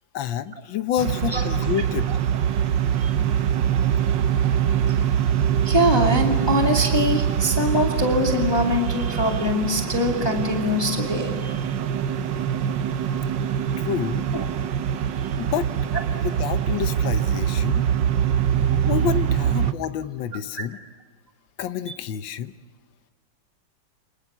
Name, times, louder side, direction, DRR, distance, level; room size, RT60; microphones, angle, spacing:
voice 1, 0.1-2.1 13.8-14.3 15.4-15.7 16.1-17.9 18.8-20.8 21.6-22.5, left 9 dB, 80° left, 11 dB, 1.6 m, -28 dB
sound 1, 1.0-19.7, right 9 dB, 75° right, 1.6 m, -23 dB
voice 2, 5.6-11.5 14.3-14.4, left 1 dB, 15° left, 1 dB, 2.2 m, -23 dB
29.0 x 20.0 x 7.3 m, 1.5 s
omnidirectional pair, 2.0 m